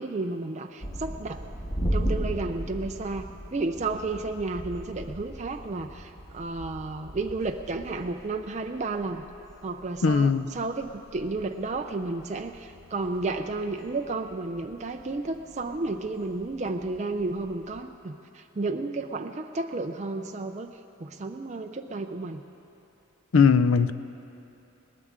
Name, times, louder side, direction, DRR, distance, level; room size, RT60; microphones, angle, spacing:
voice 1, 0.0-1.4 1.9-9.2 9.6-22.4, right 3 dB, 30° right, 4 dB, 0.4 m, -32 dB
sound 1, 0.8-17.8, equal, 15° left, 1.1 m, -38 dB
voice 2, 10.0-10.5 23.3-23.9, left 5 dB, 65° left, 13 dB, 0.5 m, -19 dB
21.0 x 18.5 x 3.7 m, 2.9 s
head